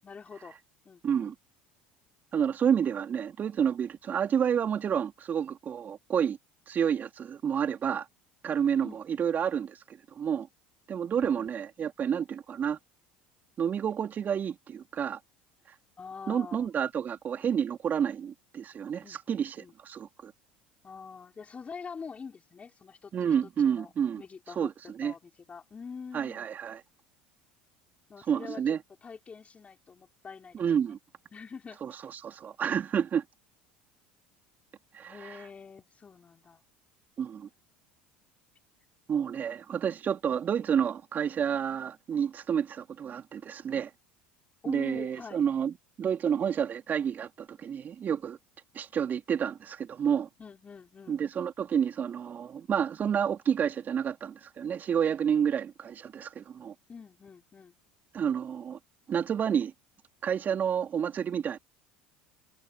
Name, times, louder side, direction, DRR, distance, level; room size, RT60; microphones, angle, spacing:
voice 1, 0.0-0.6 0.8-1.3 8.8-9.4 11.2-11.5 16.0-16.7 19.0-19.7 20.8-23.9 24.2-24.7 25.0-26.5 28.1-28.8 29.0-31.0 31.3-31.8 32.7-32.8 35.0-36.6 44.6-45.4 50.4-51.2 56.9-57.8, left 5 dB, 30° left, 5.8 m, -45 dB
voice 2, 1.0-1.3 2.3-6.4 6.7-8.1 8.4-9.8 10.1-10.5 10.9-12.8 13.6-15.2 16.3-19.6 19.8-20.3 23.1-24.2 24.5-25.1 26.1-26.8 28.3-28.8 30.5-31.0 31.8-33.2 34.9-35.4 37.2-37.5 39.1-43.9 44.6-48.4 48.7-50.3 51.1-56.7 58.1-58.8 59.1-59.7 60.2-61.6, right 8 dB, 40° right, 3.5 m, -29 dB
hypercardioid pair, 75°, 5 cm